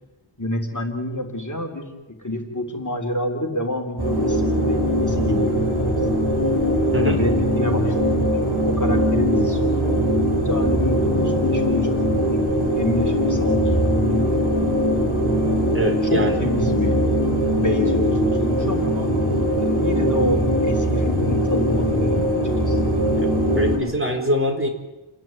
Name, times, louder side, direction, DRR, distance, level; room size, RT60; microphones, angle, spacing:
voice 1, 0.4-1.9 2.2-6.2 7.0-9.9 10.3-12.4 12.8-14.7 16.0-17.0 17.2-19.1 19.6-22.8, left 1 dB, 35° left, 3 dB, 3.4 m, -28 dB
sound 1, 4.0-23.8, equal, 50° right, 7.3 m, -21 dB
voice 2, 15.7-16.3 23.2-23.3 23.5-24.7, equal, 25° right, 2 dB, 4.4 m, -23 dB
29.5 x 11.0 x 9.3 m, 1.1 s
wide cardioid pair, 50°, 50 cm